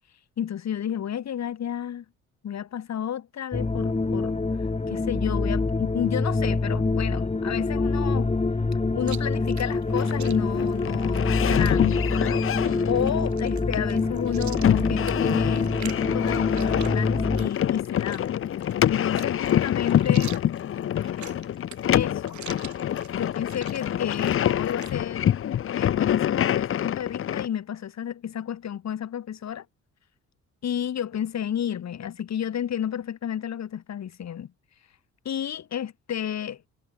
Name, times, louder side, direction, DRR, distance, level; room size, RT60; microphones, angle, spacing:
voice 1, 0.4-2.0 2.4-8.3 8.9-18.4 18.9-20.3 21.9-22.4 23.1-29.6 30.6-34.5 35.2-36.7, left 9 dB, 60° left, 7.5 m, -31 dB
sound 1, 3.5-17.5, left 3 dB, 20° left, 4.1 m, -25 dB
Chewing mastication, 9.0-25.0, right 11 dB, 70° right, 5.1 m, -46 dB
sound 2, 9.9-27.5, left 10 dB, 45° left, 0.6 m, -26 dB
cardioid pair, 90°, 30 cm